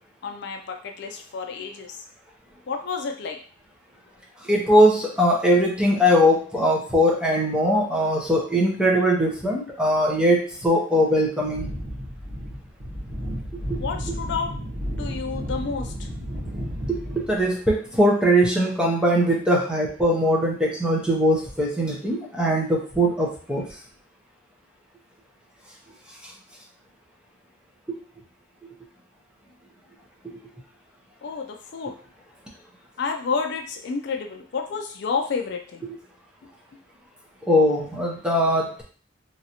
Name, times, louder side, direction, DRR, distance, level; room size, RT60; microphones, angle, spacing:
voice 1, 0.2-2.0 2.7-3.4 13.7-14.5 15.0-16.1 31.2-31.9 33.0-35.8, left 5 dB, 60° left, 4 dB, 0.4 m, -30 dB
voice 2, 4.4-11.7 13.7-13.8 16.9-23.6 37.4-38.8, equal, 5° right, -3 dB, 0.7 m, -21 dB
sound 1, 11.5-17.5, equal, 70° right, 1.3 m, -32 dB
3.1 x 2.6 x 2.8 m, 0.43 s
head